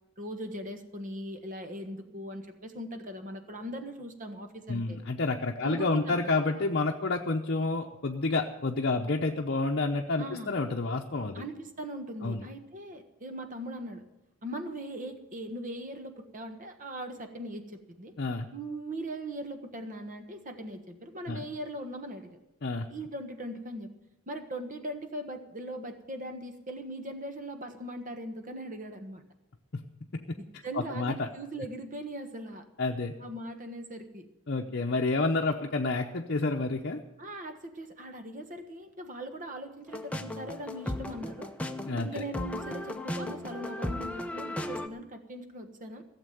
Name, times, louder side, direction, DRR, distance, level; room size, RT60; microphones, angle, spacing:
voice 1, 0.2-5.0 5.6-6.2 6.5-6.6 10.1-10.5 11.3-14.0 14.4-18.1 18.5-22.4 22.9-23.9 24.3-29.2 30.4-32.7 33.2-34.3 37.2-41.5 42.0-46.0, right 1 dB, 40° right, 7 dB, 1.3 m, -40 dB
voice 2, 4.7-11.4 12.2-12.4 18.2-18.5 21.3-21.4 22.6-22.9 29.7-29.8 30.1-30.2 30.7-31.3 32.8-33.1 34.5-37.0 41.9-42.2, left 3 dB, 50° left, 1 dB, 0.8 m, -29 dB
sound 1, 39.9-44.9, left 1 dB, 5° left, 0.7 m, -36 dB
16.0 x 7.4 x 9.2 m, 0.95 s
head